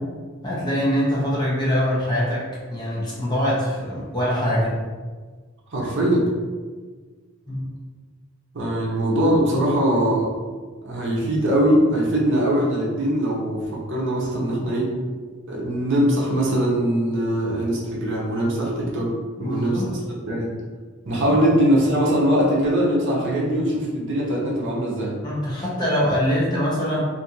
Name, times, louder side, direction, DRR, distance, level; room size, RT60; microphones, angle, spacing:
voice 1, 0.4-4.8 7.5-7.7 19.4-19.8 21.3-21.4 25.2-27.0, equal, 20° left, -8 dB, 0.8 m, -23 dB
voice 2, 5.7-6.3 8.5-10.3 10.8-15.0 15.5-20.0 20.3-20.5 21.1-25.2, right 1 dB, 60° right, -4 dB, 0.7 m, -21 dB
2.6 x 2.4 x 2.8 m, 1.4 s
head